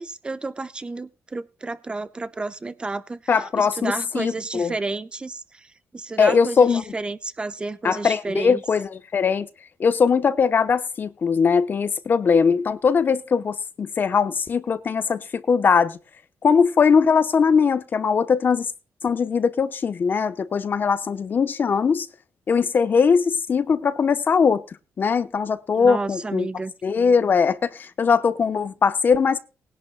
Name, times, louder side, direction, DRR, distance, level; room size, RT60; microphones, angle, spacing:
voice 1, 0.0-8.6 25.7-26.7, right 3 dB, 20° right, 0.9 m, -31 dB
voice 2, 3.3-4.7 6.2-6.8 7.8-9.5 9.8-16.0 16.4-18.7 19.0-22.1 22.5-24.6 25.0-26.5 26.8-29.4, left 5 dB, 40° left, 0.8 m, -20 dB
20.0 x 11.0 x 2.2 m
cardioid pair, 145°, 5 cm